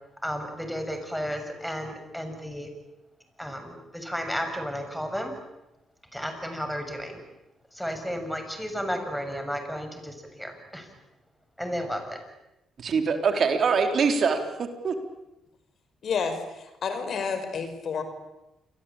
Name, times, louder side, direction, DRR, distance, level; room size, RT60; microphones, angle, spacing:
voice 1, 0.2-2.7 3.4-5.3 6.1-7.2 7.7-10.9 11.6-12.2, equal, ahead, 6 dB, 7.1 m, -33 dB
voice 2, 12.8-14.9, right 5 dB, 55° right, 6 dB, 4.0 m, -24 dB
voice 3, 16.0-16.4 16.8-18.0, left 6 dB, 60° left, 8 dB, 5.7 m, -29 dB
28.5 x 23.0 x 8.9 m, 0.92 s
cardioid pair, 90°, 0 cm